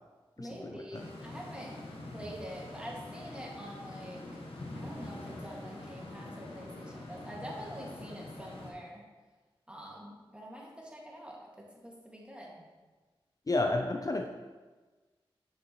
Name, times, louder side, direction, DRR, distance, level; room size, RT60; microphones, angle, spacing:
voice 1, 0.4-1.7 2.1-4.4 4.8-9.1 9.7-12.7, equal, 10° right, -3 dB, 2.1 m, -45 dB
sound 1, 0.9-8.7, left 2 dB, 85° left, 1.2 m, -45 dB
voice 2, 13.5-14.3, left 2 dB, 40° left, 3 dB, 0.6 m, -30 dB
7.8 x 6.7 x 3.1 m, 1.3 s
cardioid pair, 45°, 10 cm